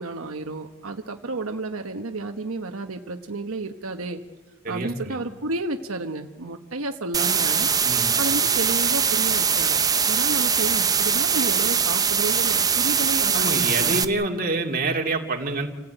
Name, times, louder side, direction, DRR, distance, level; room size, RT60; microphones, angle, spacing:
voice 1, 0.0-4.2 4.7-7.7 8.2-9.8 10.1-14.0, right 2 dB, 85° right, 5 dB, 1.2 m, -31 dB
voice 2, 4.6-5.2 7.8-8.1 13.3-15.7, right 2 dB, 40° right, 2 dB, 2.6 m, -26 dB
sound 1, 7.1-14.0, right 6 dB, 15° right, 0.8 m, -22 dB
28.0 x 16.0 x 9.1 m, 1.2 s
head